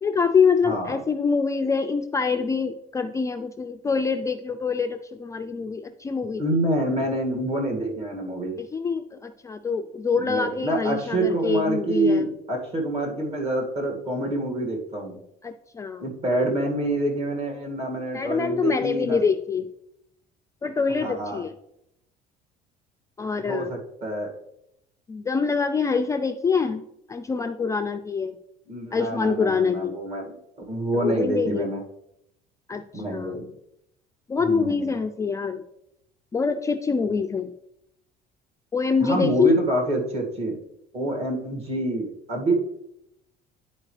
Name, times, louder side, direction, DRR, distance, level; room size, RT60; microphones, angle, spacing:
voice 1, 0.0-6.4 8.6-12.3 15.4-16.0 18.1-19.7 20.6-21.5 23.2-23.7 25.1-26.8 27.1-28.4 28.9-29.9 30.9-31.7 32.7-33.4 34.3-35.6 36.3-37.5 38.7-39.6, left 5 dB, 20° left, 6 dB, 0.3 m, -25 dB
voice 2, 0.6-1.0 6.4-8.6 10.2-15.2 16.0-19.2 21.0-21.4 23.5-24.3 28.7-30.3 30.7-31.8 32.9-33.5 34.4-34.9 39.0-40.6 40.9-42.5, right 1 dB, 40° right, 1 dB, 2.1 m, -26 dB
10.5 x 4.5 x 3.2 m, 0.79 s
cardioid pair, 120°, 16 cm